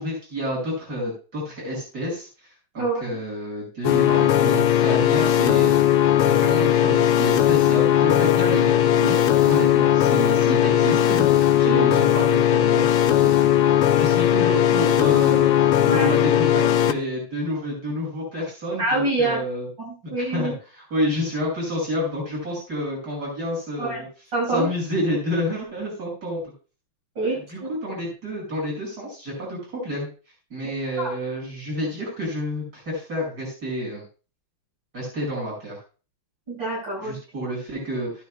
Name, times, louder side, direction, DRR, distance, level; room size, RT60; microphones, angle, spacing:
voice 1, 0.0-2.3 2.7-5.8 6.3-9.2 9.4-15.7 15.9-19.7 20.2-20.5 20.9-24.1 24.5-26.4 27.5-30.1 30.5-34.0 34.9-35.8 37.0-38.2, equal, 45° right, -4 dB, 6.2 m, -29 dB
voice 2, 2.8-3.2 10.1-10.2 10.9-11.0 11.6-11.8 15.8-16.1 18.8-19.4 19.8-20.5 23.8-24.0 24.3-24.7 27.2-27.7 31.0-31.1 36.5-37.1, right 2 dB, 60° right, -6 dB, 5.9 m, -26 dB
sound 1, 3.8-16.9, left 11 dB, 90° left, 1.6 m, -18 dB
13.5 x 11.5 x 2.2 m, 0.35 s
omnidirectional pair, 2.3 m